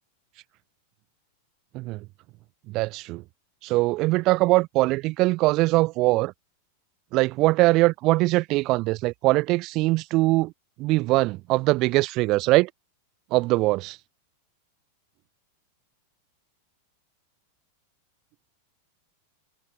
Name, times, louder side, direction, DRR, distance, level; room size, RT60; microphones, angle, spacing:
voice 1, 1.7-2.0 2.7-3.2 3.6-6.3 7.1-10.5 10.8-12.7 13.3-14.0, right 20 dB, 40° right, 0.8 m, -22 dB
figure-of-eight pair, 90°, 0 cm